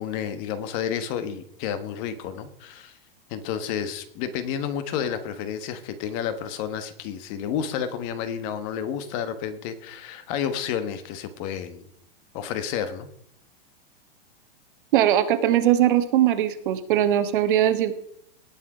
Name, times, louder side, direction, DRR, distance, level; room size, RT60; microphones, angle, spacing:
voice 1, 0.0-3.0 3.3-11.9 12.3-13.1, left 8 dB, 35° left, 11 dB, 1.2 m, -30 dB
voice 2, 14.9-17.9, right 11 dB, 60° right, 10 dB, 1.5 m, -20 dB
18.5 x 6.3 x 4.8 m, 0.71 s
supercardioid pair, 155°, 29 cm